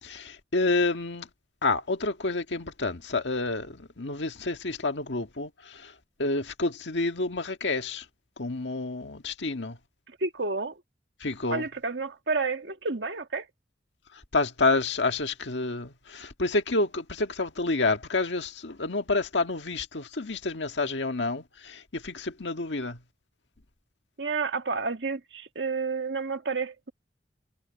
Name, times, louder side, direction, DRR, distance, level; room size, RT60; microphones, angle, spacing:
voice 1, 0.0-1.3 1.6-5.9 6.2-8.0 8.4-9.8 11.2-11.7 14.3-23.0, left 3 dB, 85° left, 1.7 m, -29 dB
voice 2, 10.2-10.8 11.5-13.5 24.2-26.9, right 4 dB, 75° right, 1.8 m, -30 dB
head